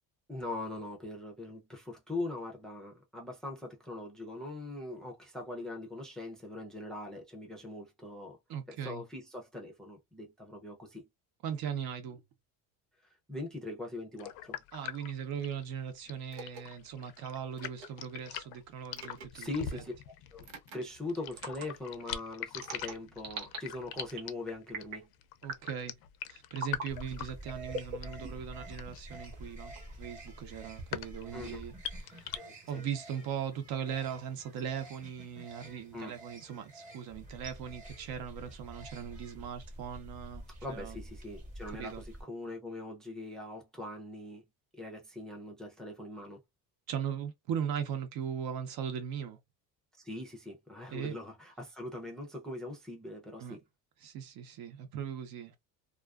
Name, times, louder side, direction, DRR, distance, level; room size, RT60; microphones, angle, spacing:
voice 1, 0.3-8.4 8.7-11.0 13.3-14.6 19.3-19.9 20.3-25.1 31.3-31.6 32.3-32.8 35.9-36.1 40.6-44.4 44.7-46.4 50.0-53.6, left 2 dB, ahead, 0.5 m, -41 dB
voice 2, 8.5-9.0 11.4-12.2 14.7-19.8 25.4-25.9 26.3-29.7 30.0-31.7 32.1-32.3 32.7-41.0 41.7-42.0 46.9-49.4 50.9-51.2 53.4-53.6 54.0-55.6, right 8 dB, 65° right, 0.8 m, -39 dB
sound 1, 14.2-32.4, left 11 dB, 70° left, 0.5 m, -43 dB
sound 2, 16.3-16.6 17.6-17.9 18.9-19.3 20.4-20.8 21.3-21.7 22.6-23.6 23.9-24.3 24.7-25.1 25.4-25.8 26.5-26.9 27.7-28.6, right 2 dB, 90° right, 1.2 m, -41 dB
sound 3, 26.9-42.2, right 1 dB, 20° right, 1.0 m, -48 dB
2.4 x 2.4 x 2.3 m
cardioid pair, 150°, 39 cm